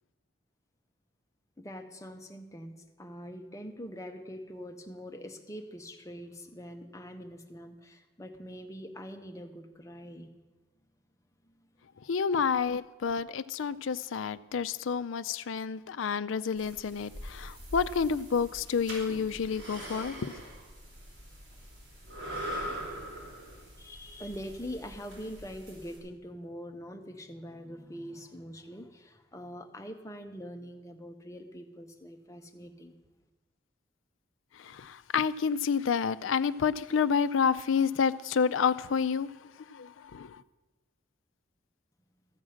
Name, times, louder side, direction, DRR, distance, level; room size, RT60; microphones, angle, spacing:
voice 1, 1.6-10.3 23.8-32.9, equal, 15° left, 0.8 m, -43 dB
voice 2, 12.1-20.3 34.8-39.3 39.8-40.3, left 6 dB, 80° left, 0.4 m, -29 dB
sound 1, 16.5-26.0, equal, 65° right, 4.7 m, -43 dB
14.0 x 7.3 x 6.4 m
head